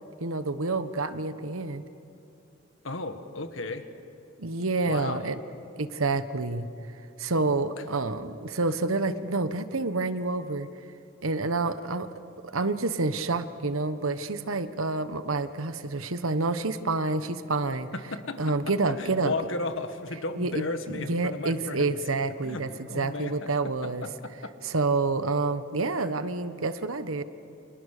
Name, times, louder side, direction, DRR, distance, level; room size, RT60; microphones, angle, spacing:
voice 1, 0.2-1.8 4.4-5.4 5.8-6.7 7.2-10.7 11.2-12.1 12.5-17.9 18.4-19.3 20.4-24.0 24.6-27.2, right 3 dB, 75° right, 11 dB, 1.2 m, -28 dB
voice 2, 2.8-3.8 4.8-5.3 7.8-7.9 8.7-8.8 17.9-18.5 18.8-21.9 22.4-22.6 22.9-23.5 23.8-24.5, left 3 dB, 65° left, 8 dB, 1.7 m, -34 dB
30.0 x 27.0 x 6.7 m, 2.7 s
head